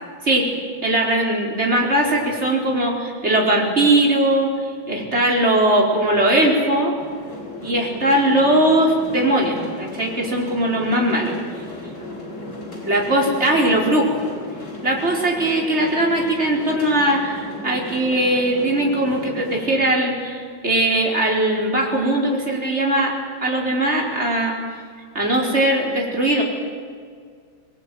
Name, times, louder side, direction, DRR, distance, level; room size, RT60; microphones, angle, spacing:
voice 1, 0.8-4.5 4.9-7.0 7.6-11.3 12.8-14.2 14.8-23.1 23.4-24.6 25.2-26.4, right 1 dB, 30° right, -1 dB, 5.2 m, -20 dB
sound 1, 7.0-19.7, left 2 dB, 55° left, 5.2 m, -35 dB
25.5 x 22.0 x 9.5 m, 2.1 s
omnidirectional pair, 2.3 m